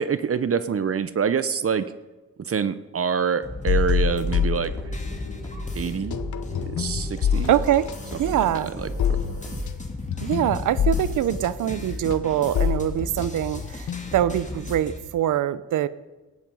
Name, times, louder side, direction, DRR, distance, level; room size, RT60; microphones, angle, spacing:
voice 1, 0.0-1.9 2.4-4.7 5.7-7.5 8.5-9.2, right 6 dB, 50° right, 14 dB, 0.8 m, -26 dB
sound 1, 3.4-15.0, left 2 dB, 25° left, 2.8 m, -37 dB
sound 2, 3.7-5.4 5.7-14.3, left 8 dB, 75° left, 0.9 m, -27 dB
sound 3, 4.1-9.7, equal, 10° left, 5.6 m, -36 dB
voice 2, 7.5-7.9 8.2-8.7 10.2-13.9 14.1-15.9, right 11 dB, 90° right, 17 dB, 0.7 m, -23 dB
17.0 x 11.0 x 5.4 m, 1.2 s
cardioid pair, 55°, 30 cm